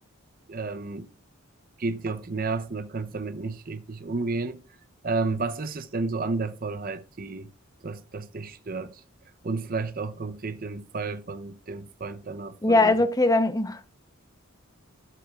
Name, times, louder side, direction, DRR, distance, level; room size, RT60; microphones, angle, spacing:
voice 1, 0.5-1.1 1.8-4.6 5.0-7.5 7.8-9.0 9.4-13.0, right 3 dB, 40° right, 0.6 m, -32 dB
voice 2, 12.6-13.9, left 2 dB, 15° left, 0.7 m, -21 dB
12.5 x 7.7 x 2.4 m
head